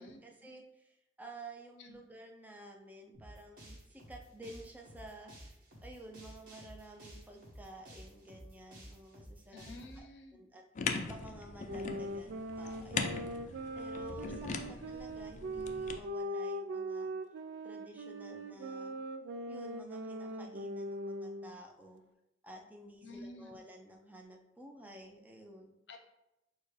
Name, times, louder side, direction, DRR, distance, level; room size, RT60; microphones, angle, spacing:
voice 1, 0.0-9.6 9.9-13.4 13.7-17.1 17.6-19.0 19.5-22.0 22.4-25.8, right 1 dB, 10° right, 1 dB, 0.5 m, -52 dB
sound 1, 3.1-10.0, equal, 55° right, 1.3 m, -52 dB
voice 2, 9.5-10.4 23.0-23.5 25.9-26.0, left 2 dB, 80° left, 4 dB, 0.6 m, -50 dB
sound 2, 10.7-16.0, left 4 dB, 45° left, 0.4 m, -40 dB
sound 3, 11.6-21.6, right 1 dB, 90° right, 0.3 m, -41 dB
6.5 x 2.2 x 3.2 m, 0.90 s
head